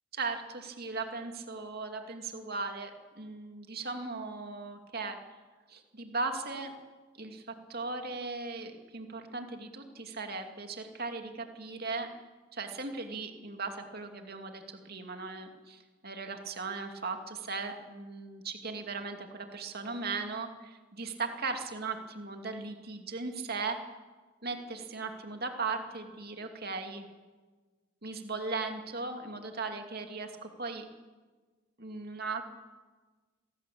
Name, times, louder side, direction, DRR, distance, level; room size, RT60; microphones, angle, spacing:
voice 1, 0.1-5.2 5.7-6.7 7.2-12.1 12.5-23.8 24.4-27.0 28.0-30.9 31.8-32.4, right 4 dB, 45° right, 5 dB, 2.7 m, -38 dB
27.0 x 18.5 x 8.6 m, 1.4 s
head